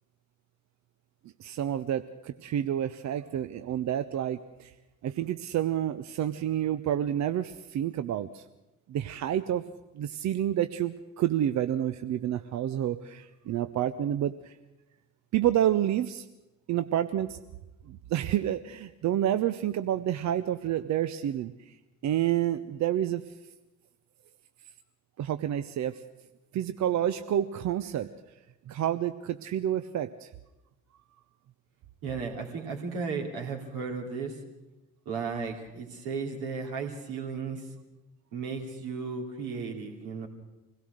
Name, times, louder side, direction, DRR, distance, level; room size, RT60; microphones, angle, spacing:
voice 1, 1.4-4.7 5.0-8.4 8.9-9.6 9.9-14.6 15.3-16.3 16.7-17.4 17.9-21.8 22.0-23.4 25.2-26.0 26.5-28.1 28.7-30.3, right 11 dB, 40° right, 11 dB, 0.7 m, -29 dB
voice 2, 32.0-34.4 35.0-37.7 38.3-40.3, right 5 dB, 60° right, 2 dB, 2.9 m, -35 dB
25.0 x 17.5 x 6.5 m, 1.0 s
figure-of-eight pair, 45°, 42 cm